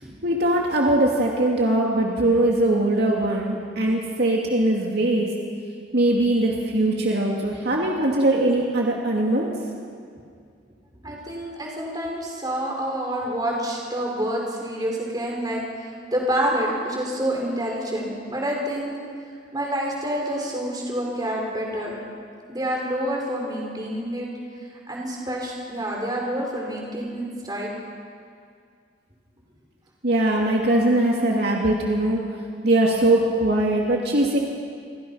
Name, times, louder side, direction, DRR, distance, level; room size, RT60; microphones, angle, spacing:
voice 1, 0.2-5.3 5.9-9.5 30.0-32.2 32.6-34.4, right 1 dB, 60° right, -1 dB, 2.6 m, -21 dB
voice 2, 11.0-18.9 19.5-22.0 22.5-24.3 24.9-27.7, right 1 dB, 20° right, -2 dB, 5.1 m, -28 dB
29.5 x 22.5 x 5.8 m, 2.2 s
head